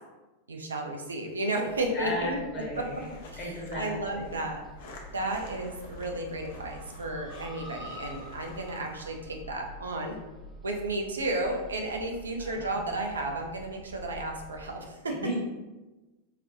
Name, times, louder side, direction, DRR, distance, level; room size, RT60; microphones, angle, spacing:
voice 1, 0.5-2.4 3.3-4.6 5.1-10.2 10.6-15.1, right 2 dB, 70° right, 2 dB, 0.5 m, -33 dB
sound 1, 1.7-14.8, left 1 dB, ahead, 0.5 m, -47 dB
voice 2, 1.9-3.1 3.4-4.4 12.4-12.9 15.2-15.4, left 1 dB, 35° left, -3 dB, 1.0 m, -35 dB
sound 2, 2.7-9.2, left 2 dB, 55° left, 0.5 m, -51 dB
4.1 x 2.2 x 2.7 m, 1.1 s
figure-of-eight pair, 90°, 0 cm